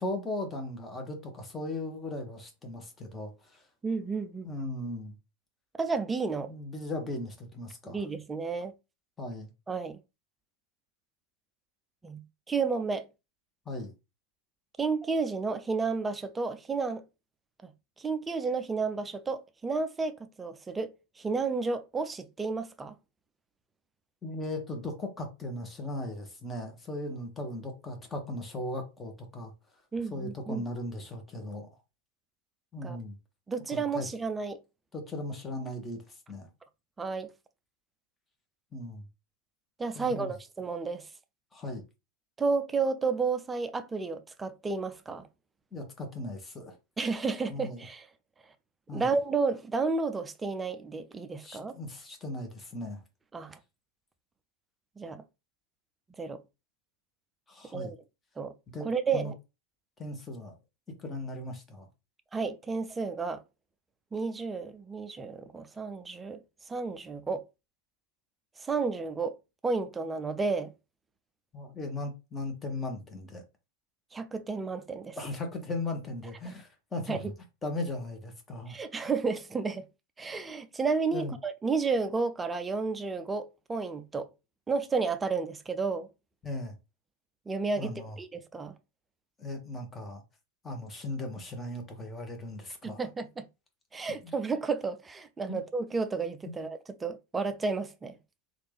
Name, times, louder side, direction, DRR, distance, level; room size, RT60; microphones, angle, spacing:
voice 1, 0.0-3.6 4.4-5.1 6.5-8.0 9.2-9.5 13.7-13.9 24.2-29.5 30.1-31.7 32.7-33.2 33.7-34.1 34.9-36.0 36.3-36.5 38.7-39.1 39.9-40.3 41.5-41.8 45.7-46.8 47.5-47.8 48.9-49.1 51.4-53.0 57.5-57.9 58.7-58.9 59.1-59.3 60.0-60.6 61.0-61.9 71.5-73.4 75.1-77.3 77.6-78.8 81.1-81.3 86.4-86.7 87.8-88.2 89.4-90.2 90.6-93.1 94.2-94.3 95.5-95.6, left 1 dB, 15° left, 1.1 m, -37 dB
voice 2, 3.8-4.5 5.8-6.5 7.8-8.7 9.7-10.0 12.0-13.1 14.8-17.0 17.6-17.7 18.0-22.9 29.9-30.6 32.8-33.0 33.5-34.6 37.0-37.3 39.8-41.1 42.4-45.3 47.0-48.1 48.9-51.8 53.3-53.6 55.0-55.2 56.2-56.4 57.7-58.0 58.4-58.5 58.8-59.4 62.3-63.4 64.1-66.4 66.7-67.5 68.6-69.4 69.6-70.7 74.1-75.2 76.5-76.6 77.1-77.3 78.7-79.9 80.2-84.3 84.7-86.1 87.5-88.7 92.8-93.5 93.9-98.1, right 4 dB, 15° right, 0.4 m, -32 dB
3.2 x 2.5 x 3.4 m
figure-of-eight pair, 90°, 0 cm